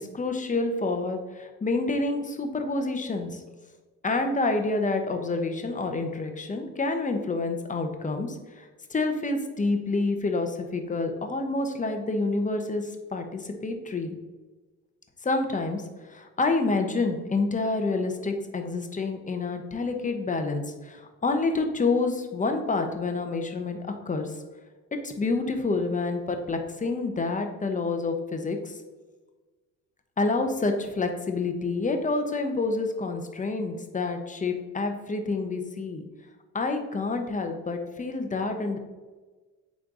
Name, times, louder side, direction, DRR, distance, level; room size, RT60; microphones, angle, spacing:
voice 1, 0.0-3.4 4.0-14.2 15.2-15.8 16.1-24.4 24.9-28.8 30.2-36.0 36.5-38.8, left 3 dB, 25° left, 5 dB, 1.0 m, -28 dB
8.9 x 3.4 x 3.8 m, 1.3 s
cardioid pair, 90°, 30 cm